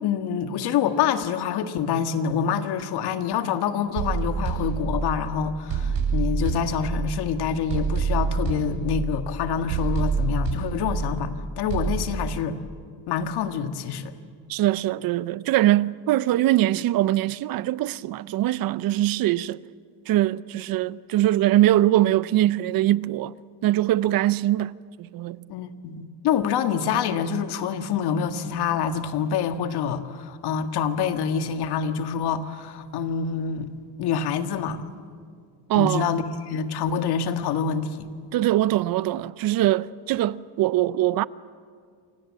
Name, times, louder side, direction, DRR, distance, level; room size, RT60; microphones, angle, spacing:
voice 1, 0.0-12.6 13.1-14.1 25.5-33.7 34.0-34.8 35.7-38.1, left 7 dB, 70° left, 1.8 m, -26 dB
sound 1, 4.0-5.2 5.7-7.3 7.7-9.3 9.7-11.3 11.7-12.0, right 5 dB, 85° right, 7.4 m, -26 dB
voice 2, 14.5-19.6 20.1-23.3 23.6-25.4 35.7-36.1 38.3-41.3, right 14 dB, 55° right, 0.7 m, -22 dB
28.5 x 25.0 x 7.5 m
cardioid pair, 125°, 41 cm